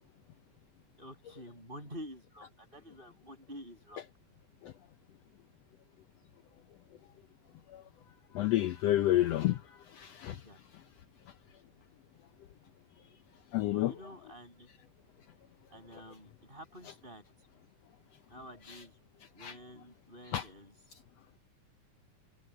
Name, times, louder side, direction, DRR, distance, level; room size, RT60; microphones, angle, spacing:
voice 1, 1.0-4.0 10.4-10.6 13.7-14.7 15.7-17.2 18.3-19.0 19.3-20.7, equal, 15° right, 8.0 m, -49 dB
voice 2, 8.3-9.6 9.9-10.4 13.5-13.9 18.7-18.8 19.4-19.6 20.3-20.4, left 14 dB, 75° left, 1.5 m, -29 dB
omnidirectional pair, 3.9 m